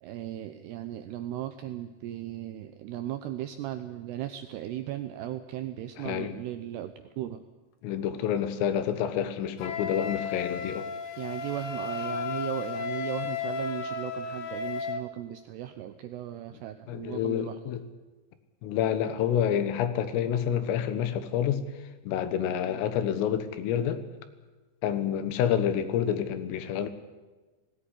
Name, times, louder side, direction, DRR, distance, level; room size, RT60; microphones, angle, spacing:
voice 1, 0.0-7.4 11.2-17.6, right 12 dB, 85° right, 9 dB, 2.4 m, -37 dB
voice 2, 6.0-6.3 7.8-10.9 16.9-17.8 18.6-21.6 22.1-24.0 24.8-26.9, left 9 dB, 85° left, 10 dB, 3.9 m, -28 dB
Wind instrument woodwind instrument, 9.6-15.0, left 5 dB, 60° left, 2.0 m, -34 dB
18.5 x 17.5 x 9.9 m, 1.2 s
omnidirectional pair, 5.8 m